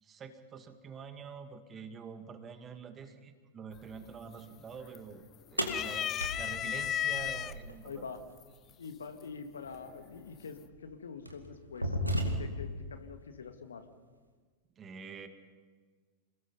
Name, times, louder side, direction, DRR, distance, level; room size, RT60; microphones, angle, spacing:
voice 1, 0.0-5.2 5.5-8.1 14.8-15.3, right 6 dB, 25° right, 8 dB, 2.0 m, -46 dB
sound 1, 3.7-4.2 4.5-5.2 5.6-7.5 8.4-8.5 9.7-10.2, left 11 dB, 30° left, 0.7 m, -34 dB
sound 2, 5.6-7.7 9.6-9.7 10.6-10.8 11.3-12.7, equal, 85° right, 2.2 m, -34 dB
voice 2, 7.8-8.2 8.8-12.0 12.2-13.9, left 5 dB, 70° left, 7 dB, 1.9 m, -45 dB
28.0 x 19.5 x 5.5 m, 1.5 s
figure-of-eight pair, 90°, 0 cm